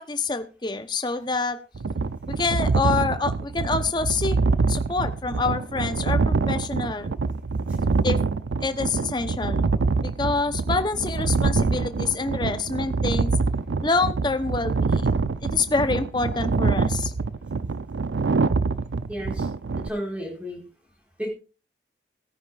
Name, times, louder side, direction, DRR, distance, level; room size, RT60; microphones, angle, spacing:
voice 1, 0.0-1.6 2.3-4.4 4.7-7.1 8.0-8.2 8.6-9.7 10.0-13.3 13.8-17.1, left 3 dB, 25° left, 10 dB, 0.8 m, -27 dB
sound 1, 1.8-19.9, right 4 dB, 85° right, 0.5 m, -25 dB
voice 2, 7.7-8.1 19.1-19.5 19.8-20.7 21.2-21.3, equal, 5° right, -1 dB, 4.3 m, -33 dB
20.0 x 9.5 x 2.5 m, 0.34 s
head